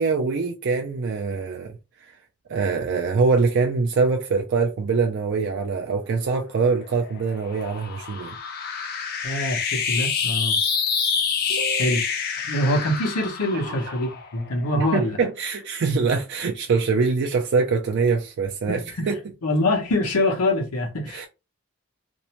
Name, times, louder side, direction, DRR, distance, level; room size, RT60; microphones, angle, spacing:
voice 1, 0.0-2.1 2.5-8.4 11.5-11.9 13.5-13.9 14.7-19.2 21.1-21.3, right 4 dB, 50° right, 0.3 m, -24 dB
Rise and fall, 6.6-15.2, left 6 dB, 45° left, 0.4 m, -27 dB
voice 2, 9.2-10.6 11.8-12.0 12.5-15.2 18.7-19.1 19.4-21.2, left 1 dB, 90° left, 0.9 m, -24 dB
2.6 x 2.1 x 2.9 m
head